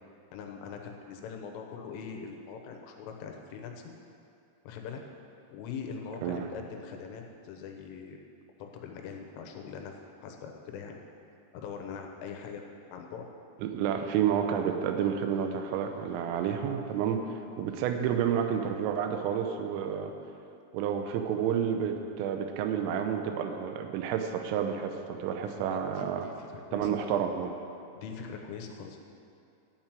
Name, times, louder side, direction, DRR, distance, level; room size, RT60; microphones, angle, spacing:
voice 1, 0.3-3.9 4.7-5.0 5.5-8.2 8.6-9.9 10.2-11.0 11.5-12.7 12.9-13.3 25.3-27.0 28.0-29.0, left 6 dB, 80° left, 3 dB, 3.5 m, -42 dB
voice 2, 13.6-17.3 17.6-20.1 20.7-26.3 26.7-27.5, right 8 dB, 90° right, 5 dB, 3.4 m, -30 dB
12.5 x 5.9 x 9.0 m, 2.5 s
omnidirectional pair, 5.7 m